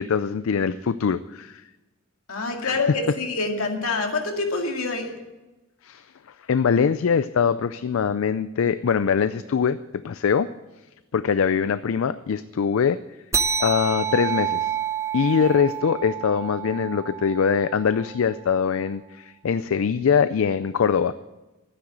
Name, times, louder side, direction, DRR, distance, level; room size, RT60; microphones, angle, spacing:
voice 1, 0.0-1.6 2.6-2.8 5.8-6.0 6.5-10.5 11.1-13.0 13.6-14.7 15.1-21.1, left 6 dB, 70° left, 14 dB, 0.4 m, -23 dB
voice 2, 2.3-5.1, left 3 dB, 85° left, 2 dB, 2.2 m, -26 dB
sound 1, 13.3-18.2, right 7 dB, 15° right, 0.6 m, -28 dB
11.5 x 9.9 x 7.8 m, 1.1 s
head